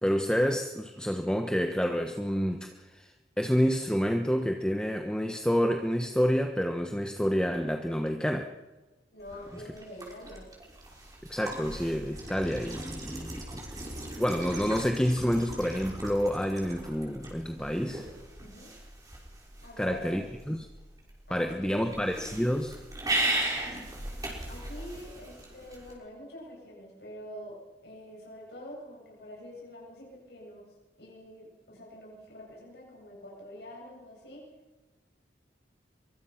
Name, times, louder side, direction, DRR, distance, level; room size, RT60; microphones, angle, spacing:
voice 1, 0.0-3.1 3.4-8.5 11.3-13.6 14.2-18.0 19.8-20.7 21.3-22.8, equal, 5° left, 4 dB, 1.1 m, -28 dB
voice 2, 9.1-10.5 18.4-18.7 19.6-20.1 21.3-21.9 24.5-27.6 27.8-34.4, left 1 dB, 65° left, -3 dB, 7.7 m, -46 dB
sound 1, 9.2-25.9, right 1 dB, 20° right, 5.9 m, -38 dB
24.0 x 23.5 x 5.9 m, 1.2 s
head